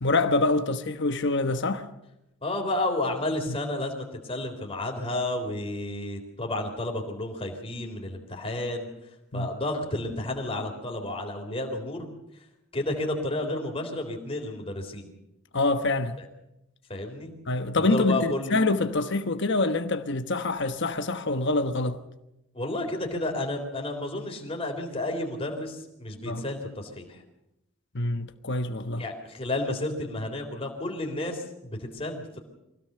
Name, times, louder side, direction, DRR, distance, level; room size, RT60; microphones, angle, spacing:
voice 1, 0.0-1.9 3.5-3.6 9.3-9.5 15.5-16.2 17.5-22.0 26.3-26.4 27.9-29.0, left 2 dB, 55° left, 1.2 m, -26 dB
voice 2, 2.4-8.9 9.3-12.1 12.7-15.1 16.9-17.3 17.8-18.6 22.5-27.2 29.0-32.4, left 1 dB, 25° left, 3.7 m, -31 dB
24.0 x 16.5 x 6.8 m
head